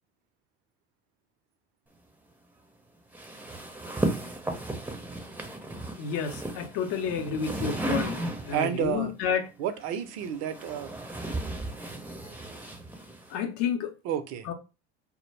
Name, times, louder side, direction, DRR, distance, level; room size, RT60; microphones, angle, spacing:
sound 1, 3.1-8.8 9.8-13.4, right 2 dB, 5° right, 0.5 m, -35 dB
voice 1, 6.0-9.5 13.3-13.9 14.4-14.5, left 7 dB, 60° left, 0.6 m, -30 dB
voice 2, 8.5-9.1 9.6-10.9 14.0-14.5, right 9 dB, 55° right, 0.5 m, -30 dB
2.2 x 2.0 x 3.2 m
hypercardioid pair, 85°, 33 cm